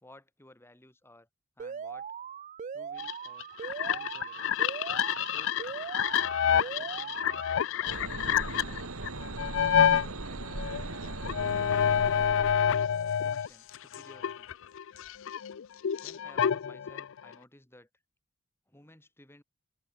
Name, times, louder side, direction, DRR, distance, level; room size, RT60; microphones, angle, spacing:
voice 1, 0.0-1.3 1.6-2.1 2.7-3.5 3.8-4.5 5.2-5.7 6.4-8.3 8.6-9.0 9.6-11.2 13.1-14.5 16.0-17.9 18.7-19.4, left 1 dB, 10° left, 3.2 m, -57 dB
Alarm, 1.6-7.6, right 7 dB, 35° right, 0.3 m, -40 dB
sound 1, 3.0-10.1 10.5-13.5 13.7-17.3, left 8 dB, 60° left, 0.4 m, -28 dB
sound 2, 7.9-13.2, right 2 dB, 75° right, 1.8 m, -39 dB
head